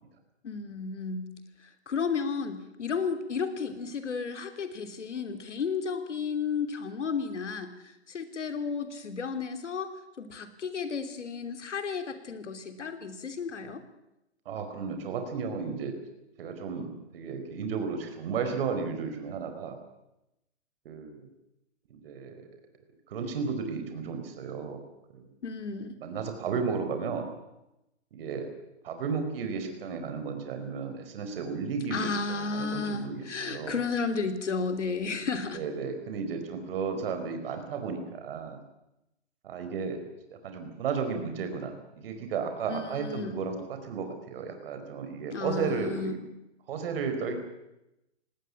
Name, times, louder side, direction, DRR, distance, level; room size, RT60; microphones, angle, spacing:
voice 1, 0.4-1.3 1.6-9.9 10.2-13.8 25.4-26.0 31.9-35.6 42.7-43.4 45.3-46.2, left 5 dB, 85° left, 8 dB, 3.2 m, -33 dB
voice 2, 14.4-15.9 16.4-19.8 20.8-21.3 21.9-22.5 23.1-24.8 25.1-25.3 26.0-27.3 28.1-28.5 28.8-33.8 35.5-38.6 39.4-40.0 40.4-46.2 46.7-47.3, right 5 dB, 55° right, 6 dB, 4.5 m, -34 dB
18.5 x 18.5 x 8.6 m, 0.90 s
hypercardioid pair, 140°, 35 cm